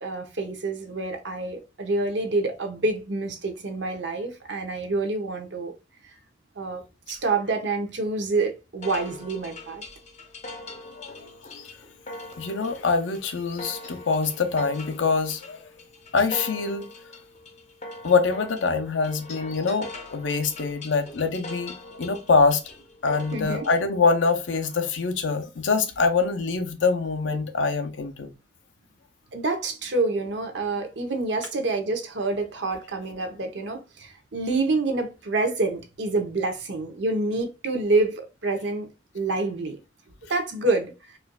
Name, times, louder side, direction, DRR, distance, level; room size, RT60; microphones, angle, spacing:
voice 1, 0.0-5.7 6.6-9.8 23.3-23.6 29.3-38.9 39.1-39.8 40.3-40.9, right 3 dB, 65° right, 0.8 m, -27 dB
sound 1, 8.8-23.8, left 2 dB, 35° left, 0.7 m, -41 dB
voice 2, 11.0-11.7 12.4-15.6 16.1-16.9 18.0-22.6 23.0-28.3, left 4 dB, 75° left, 0.6 m, -24 dB
4.4 x 2.5 x 2.2 m
head